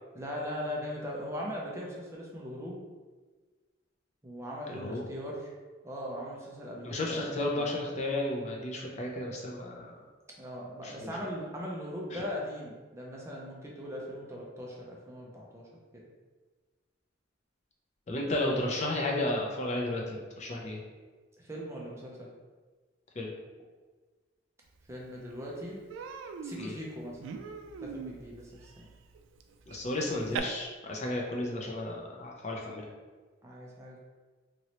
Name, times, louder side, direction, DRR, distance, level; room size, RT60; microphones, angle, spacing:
voice 1, 0.1-2.8 4.2-5.5 5.8-7.7 10.4-15.7 21.4-22.3 24.9-25.8 26.4-27.2 27.8-28.9 33.4-34.1, equal, 15° right, -3 dB, 0.4 m, -39 dB
voice 2, 4.7-5.0 6.8-10.0 10.8-11.1 12.1-12.2 18.1-20.8 23.2-23.3 26.6-26.8 29.7-32.9, left 1 dB, 35° left, -1 dB, 0.5 m, -33 dB
Human voice, 24.9-25.0 25.3-25.5 25.9-30.4, right 6 dB, 80° right, 0.3 m, -42 dB
3.0 x 2.9 x 2.9 m, 1.4 s
head